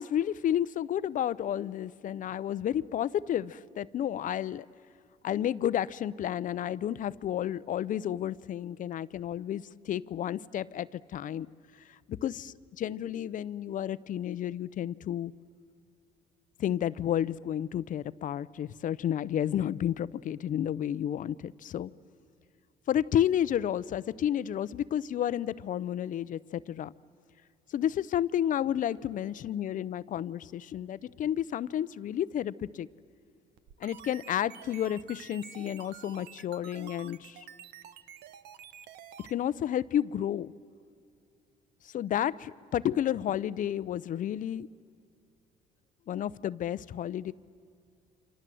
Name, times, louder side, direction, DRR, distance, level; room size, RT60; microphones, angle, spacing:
voice 1, 0.0-4.7 5.2-11.5 11.9-15.3 16.6-21.9 22.9-26.9 27.7-32.9 33.8-37.5 39.3-40.5 41.8-44.7 46.1-47.3, left 10 dB, 50° left, 18 dB, 0.6 m, -31 dB
sound 1, 33.6-39.3, right 10 dB, 80° right, 1.1 m, -49 dB
29.0 x 26.0 x 7.7 m, 2.5 s
cardioid pair, 110°, 17 cm